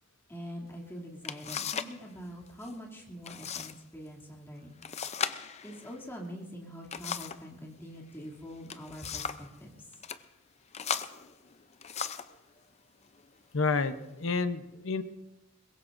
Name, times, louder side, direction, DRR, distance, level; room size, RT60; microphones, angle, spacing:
voice 1, 0.3-4.8 5.6-9.9, equal, 10° left, -3 dB, 2.7 m, -44 dB
sound 1, 0.7-0.8 1.2-2.0 2.3-2.7 3.2-3.8 4.1-4.2 4.8-7.5 8.5-9.5 9.9-10.2 10.7-12.4 13.1-13.3 13.9-14.4, left 7 dB, 35° left, 0.6 m, -37 dB
voice 2, 13.5-15.0, left 4 dB, 75° left, 10 dB, 0.9 m, -29 dB
22.0 x 21.5 x 2.6 m, 1.0 s
head